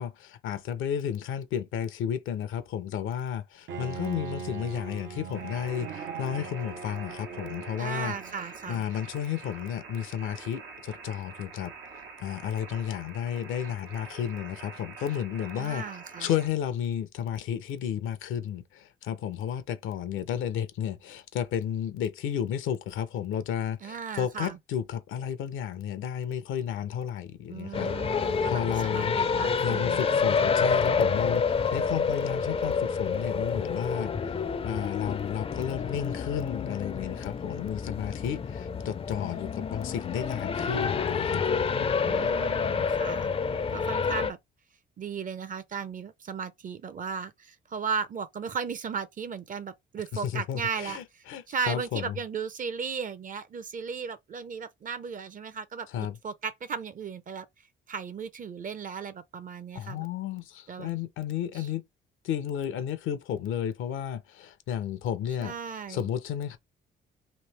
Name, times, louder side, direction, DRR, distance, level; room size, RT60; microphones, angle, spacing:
voice 1, 0.0-8.1 8.7-11.7 12.2-29.1 29.6-42.3 50.1-52.2 55.9-56.2 59.7-61.8 62.2-65.5 65.9-66.6, left 9 dB, 85° left, 0.7 m, -33 dB
Bowed string instrument, 3.7-8.5, right 6 dB, 75° right, 0.8 m, -40 dB
sound 1, 5.3-16.5, right 4 dB, 90° right, 1.1 m, -46 dB
voice 2, 7.8-8.8 15.5-16.3 23.8-24.6 27.5-30.1 42.0-43.3 43.7-44.4 45.0-57.5 57.9-60.1 60.7-60.9 61.5-61.7 65.4-66.1, right 6 dB, 40° right, 0.6 m, -36 dB
sound 2, 27.7-44.3, left 5 dB, 30° left, 0.4 m, -28 dB
3.2 x 2.7 x 3.2 m
cardioid pair, 90°, 20 cm